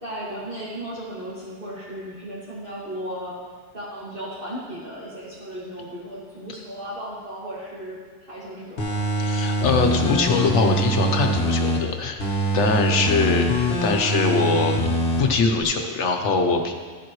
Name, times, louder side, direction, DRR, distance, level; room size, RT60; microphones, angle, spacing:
voice 1, 0.0-3.3 3.7-8.0 8.3-9.0 12.9-13.2, right 1 dB, 50° right, -10 dB, 2.2 m, -35 dB
sound 1, 8.8-11.8 12.2-15.2 15.6-15.7, right 1 dB, 60° left, 1.4 m, -23 dB
voice 2, 9.2-12.2 12.5-13.5 13.8-14.9 15.2-16.7, left 4 dB, 85° left, 4 dB, 1.2 m, -22 dB
14.5 x 7.6 x 3.1 m, 1.5 s
omnidirectional pair, 1.2 m